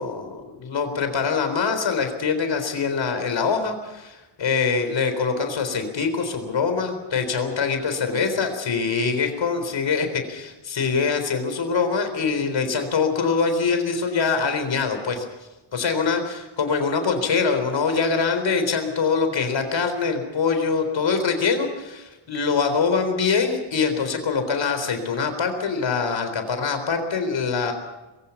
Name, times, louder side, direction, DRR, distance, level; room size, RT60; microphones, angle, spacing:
voice 1, 0.0-15.3 15.7-27.7, left 5 dB, 70° left, 7 dB, 4.0 m, -24 dB
22.5 x 16.0 x 7.2 m, 1.1 s
wide cardioid pair, 120°, 46 cm